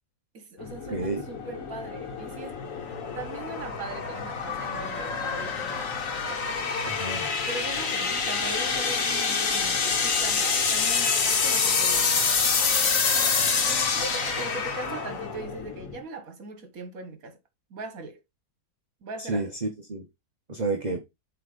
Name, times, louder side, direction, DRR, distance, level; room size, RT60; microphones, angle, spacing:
voice 1, 0.3-2.6 3.2-5.9 7.5-12.3 13.7-17.4 17.7-18.2 19.0-19.5, right 3 dB, 60° right, 1.8 m, -40 dB
sound 1, 0.6-16.0, left 5 dB, 55° left, 1.5 m, -27 dB
voice 2, 0.9-1.2 6.8-7.3 19.2-20.0 20.5-21.0, right 3 dB, 30° right, 0.9 m, -30 dB
7.7 x 3.5 x 5.1 m
omnidirectional pair, 1.7 m